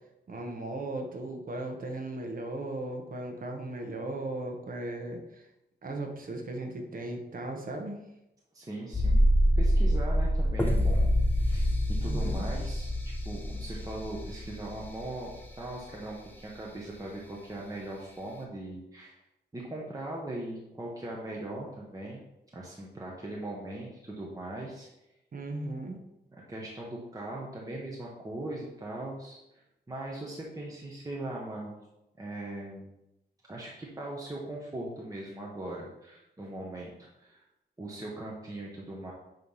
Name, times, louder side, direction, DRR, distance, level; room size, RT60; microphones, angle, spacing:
voice 1, 0.3-5.5 5.8-8.1 12.0-12.5 25.3-26.0, right 2 dB, 50° right, 2 dB, 1.1 m, -37 dB
voice 2, 8.5-11.1 11.3-11.7 12.0-12.9 13.2-19.2 19.5-22.2 22.5-24.9 26.5-29.4 29.9-31.7 32.2-32.9 33.5-37.4 37.8-39.1, right 1 dB, 20° right, -4 dB, 1.0 m, -40 dB
sound 1, 8.9-15.7 16.0-16.1, equal, 10° left, 0.8 m, -26 dB
9.1 x 3.2 x 5.6 m, 0.90 s
wide cardioid pair, 170°, 18 cm